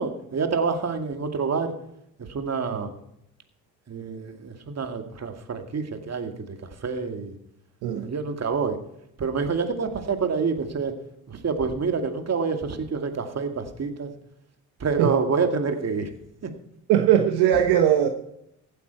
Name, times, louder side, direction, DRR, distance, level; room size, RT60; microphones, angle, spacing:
voice 1, 0.0-1.7 2.2-2.9 3.9-6.6 6.8-7.3 7.9-8.8 9.2-10.9 11.3-14.1 14.8-16.1 16.4-16.5, right 5 dB, 40° right, 2.2 m, -27 dB
voice 2, 16.9-18.1, right 10 dB, 70° right, 1.2 m, -20 dB
15.5 x 9.3 x 4.6 m
hypercardioid pair, 55°, 40 cm